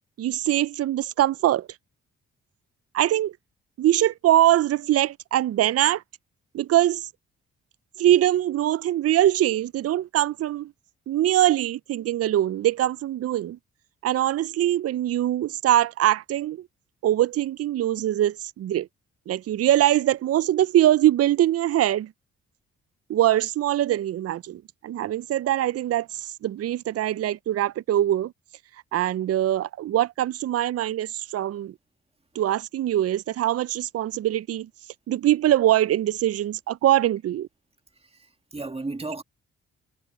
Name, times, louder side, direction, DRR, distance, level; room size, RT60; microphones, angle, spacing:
voice 1, 0.2-1.7 2.9-3.3 3.8-6.0 6.5-7.1 8.0-10.7 11.1-13.6 14.0-16.6 17.0-18.9 19.3-22.1 23.1-28.3 28.9-31.7 32.4-34.7 35.1-37.5, right 13 dB, 55° right, 0.5 m, -23 dB
voice 2, 38.1-39.2, right 3 dB, 20° right, 2.1 m, -34 dB
supercardioid pair, 55°, 30 cm